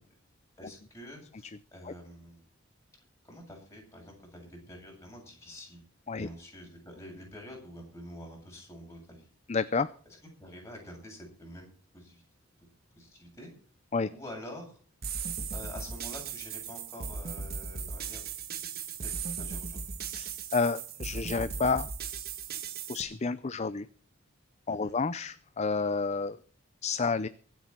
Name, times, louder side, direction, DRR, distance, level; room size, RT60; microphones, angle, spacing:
voice 1, 0.6-2.4 3.2-5.8 6.2-9.3 10.4-11.7 11.9-12.2 13.0-13.5 14.1-14.8 15.5-18.2 18.5-18.6 19.0-19.9 24.7-24.9, left 1 dB, 15° left, -1 dB, 7.8 m, -47 dB
voice 2, 9.5-9.9 13.9-14.1 20.1-21.9 22.9-23.9 24.7-26.4 26.8-27.3, left 4 dB, 35° left, 14 dB, 0.5 m, -30 dB
sound 1, 15.0-23.0, right 6 dB, 50° right, 1.6 m, -37 dB
23.5 x 8.5 x 4.4 m, 0.43 s
head